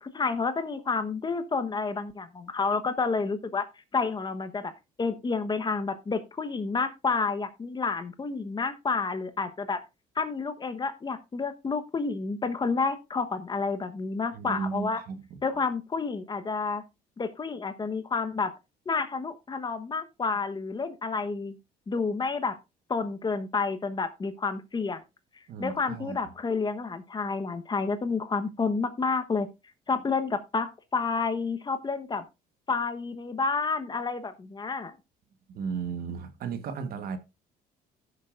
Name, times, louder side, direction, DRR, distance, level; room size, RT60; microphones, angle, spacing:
voice 1, 0.0-3.7 3.9-4.7 5.0-9.8 10.2-15.0 15.4-16.8 17.2-18.5 18.9-21.6 21.9-22.6 22.9-25.0 25.6-29.5 29.9-32.2 32.7-34.9, left 4 dB, 25° left, 1.0 m, -30 dB
voice 2, 14.3-15.4 25.5-26.2 35.5-37.2, right 5 dB, 60° right, 1.3 m, -35 dB
16.0 x 6.6 x 2.5 m
cardioid pair, 110°, 17 cm